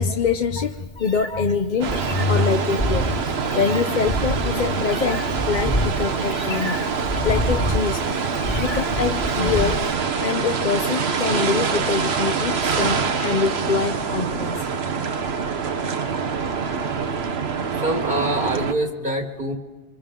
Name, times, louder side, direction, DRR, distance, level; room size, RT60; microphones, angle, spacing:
voice 1, 0.0-6.8 7.2-8.0 8.6-9.9 10.2-14.6, left 5 dB, 50° left, 6 dB, 0.8 m, -24 dB
Meow, 0.6-9.9, equal, 25° left, 2.3 m, -28 dB
sound 1, 1.8-18.7, right 5 dB, 75° right, 1.3 m, -25 dB
voice 2, 17.8-19.5, right 1 dB, 55° right, 3 dB, 1.9 m, -25 dB
28.0 x 25.0 x 3.8 m, 1.4 s
omnidirectional pair, 1.1 m